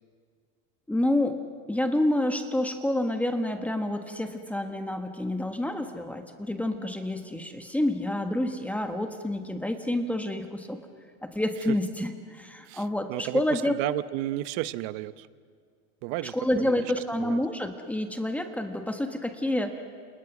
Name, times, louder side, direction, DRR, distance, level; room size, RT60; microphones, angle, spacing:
voice 1, 0.9-1.4 1.7-10.8 11.2-13.7 16.2-19.8, left 1 dB, 5° left, 5 dB, 1.4 m, -28 dB
voice 2, 12.7-15.3 16.0-16.8 17.1-17.4, right 16 dB, 60° right, 14 dB, 1.0 m, -33 dB
29.0 x 28.0 x 6.2 m, 2.1 s
supercardioid pair, 140°, 34 cm